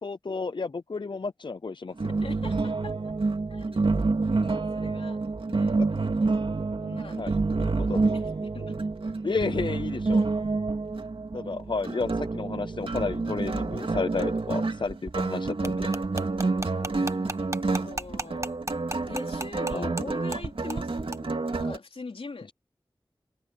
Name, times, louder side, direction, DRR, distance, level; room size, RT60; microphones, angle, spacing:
voice 1, 0.0-2.1 7.2-7.3 7.6-8.0 9.2-10.3 11.3-15.9 19.7-19.9, left 4 dB, 60° left, 0.6 m, -32 dB
sound 1, 2.0-21.8, right 3 dB, 70° right, 2.4 m, -28 dB
voice 2, 2.2-3.1 3.5-5.2 5.5-5.8 6.8-8.8 11.4-11.5 16.5-17.3 17.8-18.6 19.1-22.5, left 3 dB, 90° left, 3.5 m, -43 dB
sound 2, 15.6-20.0 20.3-20.4 20.7-20.8 21.1-21.2, right 2 dB, 30° right, 1.2 m, -34 dB
open air
wide cardioid pair, 60°, 9 cm